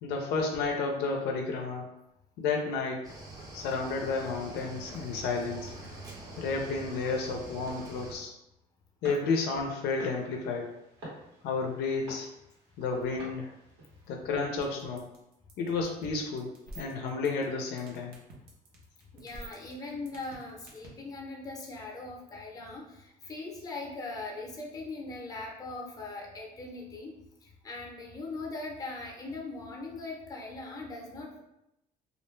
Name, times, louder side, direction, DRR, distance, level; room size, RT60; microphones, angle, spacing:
voice 1, 0.0-1.9 2.4-3.1 3.5-5.7 6.4-8.3 9.0-10.8 11.4-12.3 12.8-13.5 14.1-15.1 15.6-16.5 16.8-18.1, left 4 dB, 80° left, 1 dB, 0.5 m, -31 dB
Cricket / Waves surf, 3.0-8.1, right 2 dB, 20° right, 0.6 m, -44 dB
sound 1, 9.0-14.2, right 1 dB, 85° right, 1.2 m, -49 dB
sound 2, 14.6-20.9, right 2 dB, 70° right, 0.8 m, -46 dB
voice 2, 19.1-31.4, left 3 dB, 20° left, -1 dB, 0.7 m, -40 dB
2.4 x 2.1 x 3.1 m, 0.84 s
cardioid pair, 110°, 17 cm